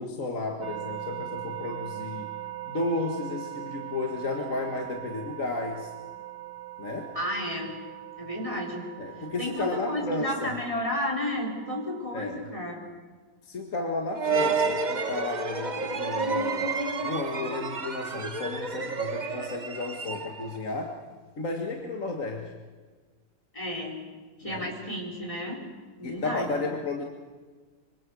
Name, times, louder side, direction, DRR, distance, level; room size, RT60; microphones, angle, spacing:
voice 1, 0.0-2.3 2.7-5.9 6.8-7.2 9.0-10.5 12.1-12.5 13.4-21.0 21.4-22.5 24.4-24.7 26.0-27.0, left 3 dB, 45° left, 2 dB, 2.1 m, -33 dB
sound 1, 0.6-12.1, right 14 dB, 75° right, 3.0 m, -41 dB
voice 2, 7.1-7.8 8.2-8.8 9.4-12.8 23.5-24.0 24.4-25.6 26.0-26.7, left 1 dB, 15° left, 0 dB, 4.4 m, -32 dB
sound 2, 14.2-20.6, right 4 dB, 30° right, 1.1 m, -30 dB
25.0 x 24.5 x 6.3 m, 1.4 s
omnidirectional pair, 1.9 m